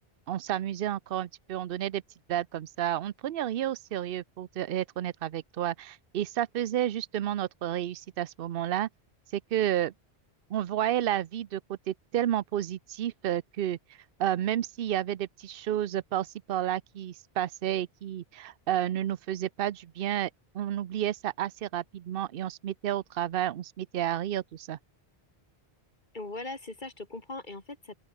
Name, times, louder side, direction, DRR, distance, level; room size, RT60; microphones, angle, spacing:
voice 1, 0.3-2.0 2.3-8.9 9.3-9.9 10.5-13.8 14.2-20.3 20.5-24.8, right 11 dB, 65° right, 0.8 m, -31 dB
voice 2, 26.1-27.9, left 2 dB, 50° left, 2.9 m, -40 dB
omnidirectional pair, 1.1 m